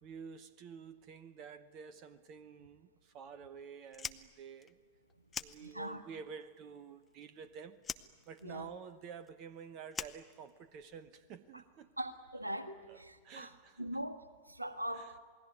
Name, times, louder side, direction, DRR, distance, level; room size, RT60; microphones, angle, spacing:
voice 1, 0.0-4.8 5.4-7.8 8.3-11.9 12.9-13.0 13.2-13.9 14.9-15.1, right 6 dB, 40° right, 1.0 m, -50 dB
Fire, 3.9-6.2 6.4-7.4 7.8-11.0, left 6 dB, 20° left, 0.8 m, -45 dB
voice 2, 5.6-6.0 8.4-8.7 12.0-13.5 13.8-15.2, right 1 dB, 85° right, 1.6 m, -41 dB
28.0 x 20.0 x 9.5 m
figure-of-eight pair, 90°, 0 cm